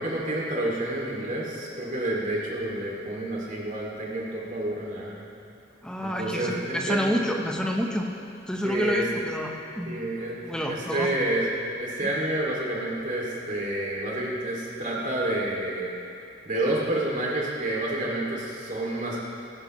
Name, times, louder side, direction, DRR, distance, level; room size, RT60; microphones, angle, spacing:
voice 1, 0.0-5.3 6.0-7.0 8.6-9.0 9.9-11.5 11.7-16.0 16.4-19.2, right 1 dB, 45° right, -4 dB, 2.6 m, -29 dB
voice 2, 5.8-8.1 8.5-10.0 10.5-11.1 12.0-12.1, equal, 5° left, 1 dB, 1.0 m, -28 dB
17.0 x 11.0 x 3.2 m, 2.8 s
head